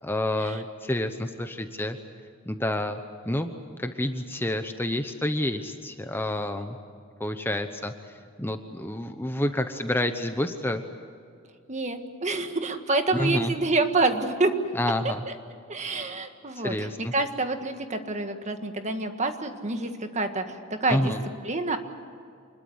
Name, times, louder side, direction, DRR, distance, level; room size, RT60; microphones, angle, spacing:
voice 1, 0.0-2.0 2.5-3.5 3.8-6.8 7.2-7.9 8.4-10.8 13.1-13.5 14.7-15.2 16.6-17.1 20.9-21.2, left 1 dB, 10° left, 7 dB, 1.0 m, -29 dB
voice 2, 11.7-14.5 15.3-15.4 15.7-21.1 21.4-21.8, right 3 dB, 35° right, 7 dB, 1.7 m, -27 dB
26.5 x 21.5 x 8.0 m, 2.3 s
head